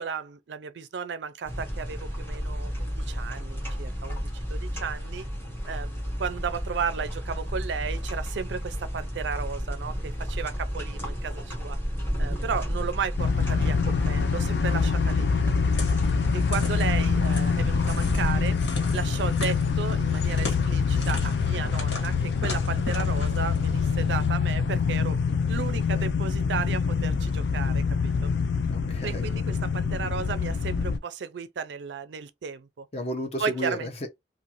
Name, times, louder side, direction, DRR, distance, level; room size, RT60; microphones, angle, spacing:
voice 1, 0.0-5.3 5.7-11.8 12.2-15.3 16.3-18.6 18.9-25.2 25.5-28.3 29.0-32.9 33.4-33.9, right 6 dB, 75° right, 0.4 m, -34 dB
sound 1, 1.5-18.5, equal, 15° left, 1.1 m, -32 dB
sound 2, 13.2-31.0, left 5 dB, 70° left, 0.4 m, -25 dB
sound 3, 15.7-24.3, left 2 dB, 85° left, 1.6 m, -39 dB
voice 2, 28.7-29.2 32.9-34.1, equal, 35° left, 0.7 m, -33 dB
2.6 x 2.5 x 2.8 m
head